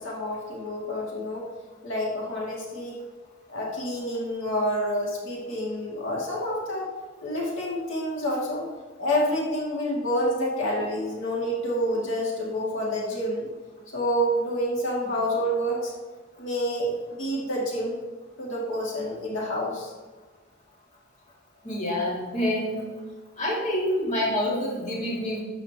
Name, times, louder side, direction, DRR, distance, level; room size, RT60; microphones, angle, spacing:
voice 1, 0.0-1.5 1.8-3.0 3.5-6.9 7.2-8.6 9.0-13.5 13.9-15.9 16.4-18.0 18.4-19.9, equal, 70° left, -4 dB, 2.3 m, -28 dB
voice 2, 21.6-22.9 23.4-25.4, left 1 dB, 35° left, -5 dB, 2.3 m, -27 dB
12.5 x 8.0 x 2.9 m, 1.3 s
head